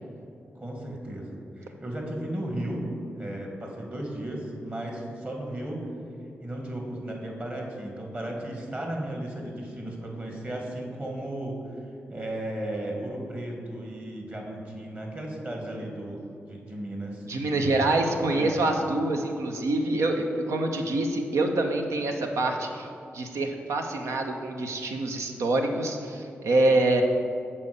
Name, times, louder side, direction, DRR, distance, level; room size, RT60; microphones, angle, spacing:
voice 1, 0.6-2.8 3.1-5.9 6.4-11.8 12.1-17.3 18.3-18.6, right 1 dB, 30° right, 0 dB, 2.0 m, -35 dB
voice 2, 17.3-22.9 23.1-27.0, right 2 dB, 80° right, 4 dB, 0.8 m, -26 dB
6.8 x 4.3 x 6.7 m, 2.5 s
supercardioid pair, 40°, 5 cm